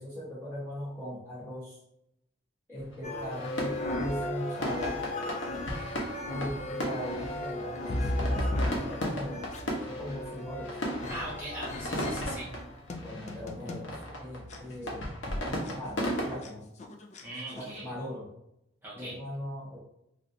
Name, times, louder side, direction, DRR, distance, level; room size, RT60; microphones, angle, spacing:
voice 1, 0.0-1.8 2.7-5.0 6.3-9.5 9.9-10.8 13.0-15.1 15.4-16.7 17.5-18.3 18.9-19.8, equal, 10° left, -11 dB, 1.1 m, -39 dB
sound 1, 2.8-16.4, equal, 85° left, 0.9 m, -37 dB
sound 2, 3.0-13.9 14.5-14.6 15.3-15.4 15.7-15.8 16.0-16.5 16.8-17.2 17.6-17.8, left 1 dB, 35° left, 0.4 m, -35 dB
voice 2, 11.1-12.5 17.2-17.9 18.8-19.2, right 1 dB, 10° right, -9 dB, 1.4 m, -40 dB
3.2 x 2.5 x 2.6 m, 0.80 s
head